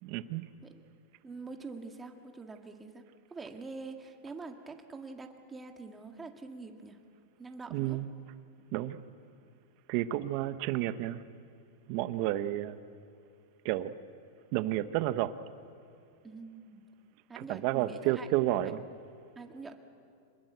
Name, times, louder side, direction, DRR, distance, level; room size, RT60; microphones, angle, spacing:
voice 1, 0.0-0.5 7.7-8.1 8.7-9.0 9.9-11.2 11.9-12.8 13.6-13.9 14.5-15.4 17.4-18.8, right 14 dB, 50° right, 12 dB, 1.1 m, -31 dB
voice 2, 1.2-3.0 3.3-7.0 7.4-8.0 16.2-16.8 17.3-18.5 19.4-19.7, right 3 dB, 15° right, 4 dB, 1.9 m, -45 dB
27.0 x 20.5 x 8.1 m, 2.6 s
supercardioid pair, 135°, 0 cm